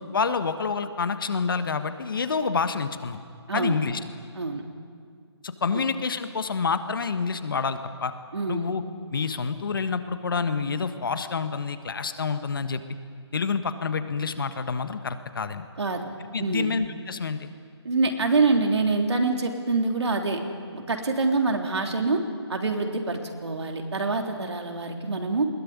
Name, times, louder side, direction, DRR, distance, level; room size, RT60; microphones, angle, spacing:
voice 1, 0.1-3.2 3.5-4.0 5.4-8.1 8.5-8.8 9.1-12.8 13.3-15.6 16.3-17.5, left 5 dB, 50° left, 10 dB, 1.5 m, -28 dB
voice 2, 4.3-4.7 5.7-5.8 8.3-8.7 15.8-16.0 16.4-16.7 17.8-20.4 20.7-22.2 22.5-25.5, right 3 dB, 75° right, 3 dB, 3.3 m, -25 dB
21.0 x 18.0 x 9.6 m, 2.1 s
hypercardioid pair, 165°, 14 cm